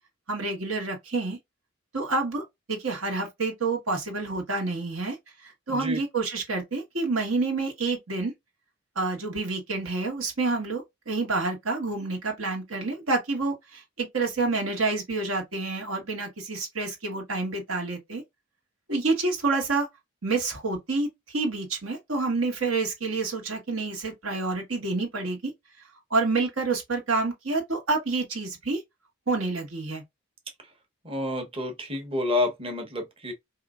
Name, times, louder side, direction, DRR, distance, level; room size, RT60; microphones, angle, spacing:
voice 1, 0.3-1.4 1.9-5.2 5.4-8.3 8.9-18.2 18.9-19.9 20.2-25.5 26.1-28.8 29.3-30.0, right 3 dB, 75° right, 1.7 m, -28 dB
voice 2, 5.7-6.0 31.0-33.3, left 2 dB, 25° right, 1.1 m, -29 dB
4.9 x 2.8 x 2.5 m
head